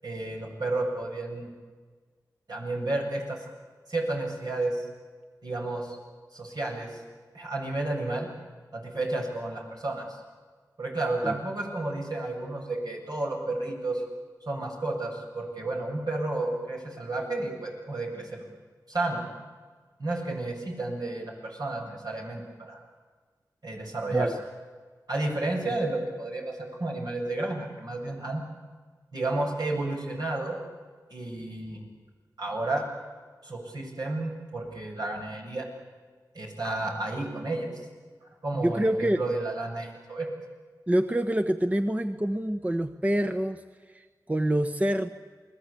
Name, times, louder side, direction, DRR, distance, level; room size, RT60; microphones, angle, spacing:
voice 1, 0.0-1.5 2.5-3.4 3.9-4.9 5.4-6.0 6.3-7.0 7.3-8.3 8.7-10.0 10.8-14.0 14.5-18.5 18.9-19.2 20.0-22.8 23.6-24.3 25.1-28.4 29.1-30.6 31.1-31.8 32.4-32.9 33.4-35.7 36.3-37.7 38.4-40.3, right 2 dB, 65° right, -1 dB, 7.9 m, -31 dB
voice 2, 38.5-39.2 40.9-43.6 43.9-45.1, right 1 dB, 20° right, 8 dB, 1.1 m, -26 dB
29.0 x 20.5 x 8.6 m, 1.5 s
wide cardioid pair, 55°, 7 cm